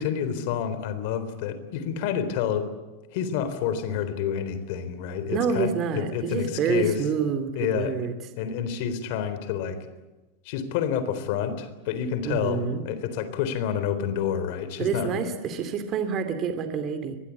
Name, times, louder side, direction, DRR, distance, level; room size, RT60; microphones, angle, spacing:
voice 1, 0.0-2.7 3.1-7.0 7.6-8.0 8.4-9.8 10.5-15.2, left 8 dB, 50° left, 12 dB, 3.8 m, -28 dB
voice 2, 5.3-8.1 12.2-12.8 14.8-17.2, right 6 dB, 30° right, 8 dB, 2.5 m, -27 dB
24.0 x 21.0 x 8.5 m, 1.1 s
supercardioid pair, 170°, 0 cm